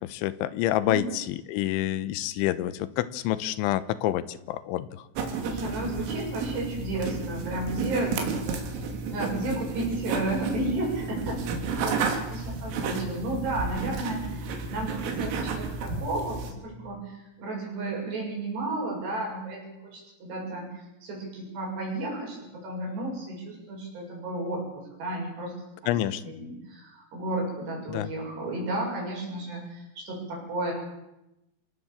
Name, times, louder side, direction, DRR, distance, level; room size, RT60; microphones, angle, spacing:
voice 1, 0.0-5.1 25.9-26.2 27.9-28.1, left 13 dB, 80° left, 15 dB, 3.3 m, -28 dB
sound 1, 5.2-16.5, right 4 dB, 85° right, 5.3 m, -32 dB
voice 2, 5.4-8.6 9.1-11.4 11.8-25.5 25.8-25.9 26.3-30.7, right 2 dB, 60° right, -1 dB, 9.4 m, -33 dB
28.0 x 19.0 x 7.3 m, 0.94 s
omnidirectional pair, 5.6 m